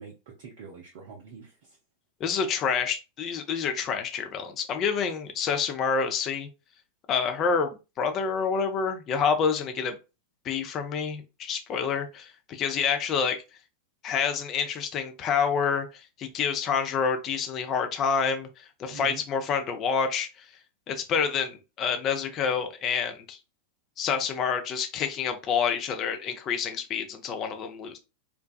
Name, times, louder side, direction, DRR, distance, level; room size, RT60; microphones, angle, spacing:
voice 1, 0.0-1.8 18.9-19.2, right 6 dB, 50° right, 0 dB, 0.5 m, -45 dB
voice 2, 2.2-6.5 7.1-10.0 10.4-13.4 14.0-20.3 20.9-23.4 24.0-28.0, left 6 dB, 30° left, 6 dB, 0.5 m, -28 dB
2.5 x 2.2 x 2.3 m, 0.29 s
figure-of-eight pair, 90°, 0 cm